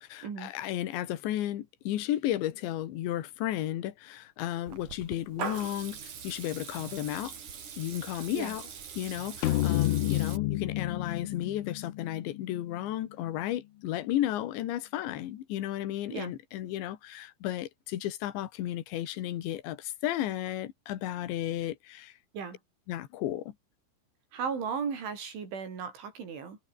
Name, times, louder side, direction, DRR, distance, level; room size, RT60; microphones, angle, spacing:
voice 1, 0.0-7.3 7.8-8.7 9.0-22.1 22.9-23.5, left 13 dB, 70° left, 4.0 m, -33 dB
Water tap faucet / Liquid, 4.7-10.4, right 7 dB, 45° right, 4.3 m, -42 dB
sound 1, 9.4-12.9, left 15 dB, 90° left, 3.9 m, -30 dB
voice 2, 24.3-26.6, right 6 dB, 75° right, 7.8 m, -35 dB
omnidirectional pair, 5.5 m